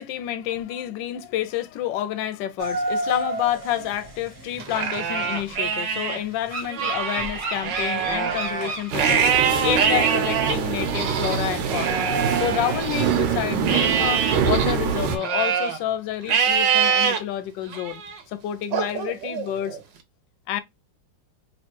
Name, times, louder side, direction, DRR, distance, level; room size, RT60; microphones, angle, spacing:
voice 1, 0.0-12.1 12.3-18.0 18.3-19.8 20.5-20.6, left 12 dB, 75° left, 1.2 m, -29 dB
sound 1, 2.6-10.3, right 1 dB, 40° right, 0.7 m, -33 dB
Livestock farm animals working animals, 4.6-6.2 6.6-13.2 13.7-15.8 16.3-17.2 17.7-18.2 18.7-19.8, right 7 dB, 70° right, 1.3 m, -25 dB
sound 2, 8.9-15.2, right 7 dB, 85° right, 1.6 m, -25 dB
3.3 x 3.1 x 2.9 m
omnidirectional pair, 2.2 m